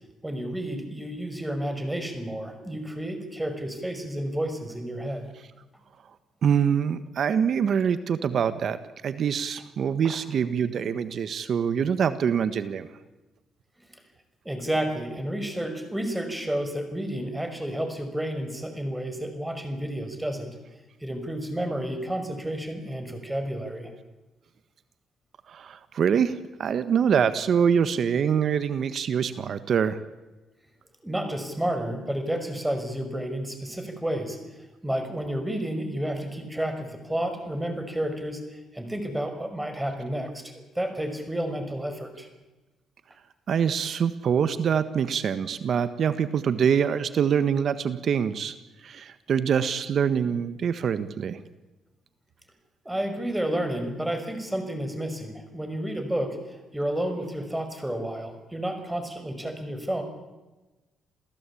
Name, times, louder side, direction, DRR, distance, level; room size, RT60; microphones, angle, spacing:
voice 1, 0.2-5.3 10.0-10.2 14.4-20.5 21.0-23.9 31.0-34.4 34.8-42.3 52.8-60.0, right 1 dB, 10° right, 7 dB, 5.8 m, -31 dB
voice 2, 6.4-12.9 25.5-30.0 43.5-48.5 48.8-51.4, right 7 dB, 60° right, 12 dB, 1.4 m, -25 dB
28.5 x 16.0 x 8.6 m, 1.1 s
cardioid pair, 90°, 0 cm